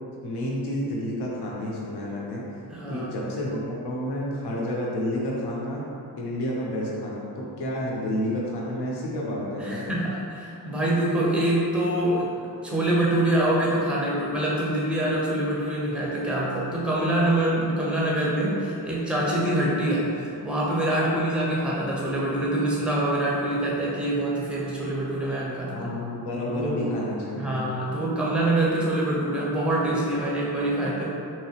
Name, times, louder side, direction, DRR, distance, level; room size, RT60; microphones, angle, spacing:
voice 1, 0.2-2.4 2.9-5.9 6.2-9.9 25.7-27.6, left 1 dB, 70° left, -4 dB, 0.8 m, -30 dB
voice 2, 2.7-3.1 9.6-12.3 12.6-20.1 20.4-25.9 26.5-26.8 27.4-31.1, right 1 dB, 5° right, -5 dB, 0.6 m, -25 dB
3.4 x 3.0 x 2.8 m, 2.7 s
wide cardioid pair, 130°, 41 cm